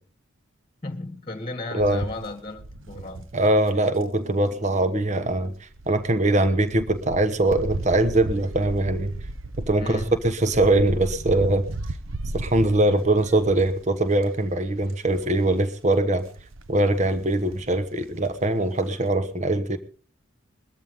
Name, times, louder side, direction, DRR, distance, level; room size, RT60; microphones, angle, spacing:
voice 1, 0.8-3.3 9.8-10.1, left 2 dB, 25° left, 1.7 m, -35 dB
sound 1, 1.8-4.0 5.2-13.8 14.2-14.5 14.8-15.3 16.2-17.0 17.5-17.6 17.9-18.0, right 2 dB, 75° right, 1.0 m, -36 dB
voice 2, 3.3-5.5 5.9-9.1 9.6-11.6 12.3-16.3 16.7-19.8, right 1 dB, 35° right, 1.1 m, -22 dB
21.5 x 13.5 x 3.6 m
head